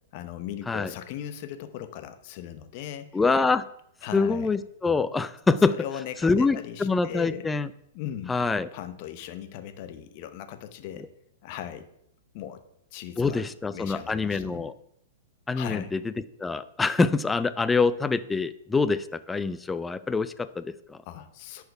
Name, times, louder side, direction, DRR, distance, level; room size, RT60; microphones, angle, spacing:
voice 1, 0.1-3.2 4.0-4.5 5.7-7.5 7.9-8.4 8.7-11.1 11.4-11.9 12.3-12.6 12.9-14.7 15.6-15.9 21.1-21.6, left 11 dB, 50° left, 10 dB, 0.9 m, -38 dB
voice 2, 3.1-3.6 4.1-5.8 6.2-7.7 8.3-8.7 13.2-14.7 15.5-16.0 16.4-21.0, left 4 dB, 10° left, 14 dB, 0.4 m, -25 dB
10.5 x 4.8 x 4.6 m, 0.74 s
hypercardioid pair, 110°, 0 cm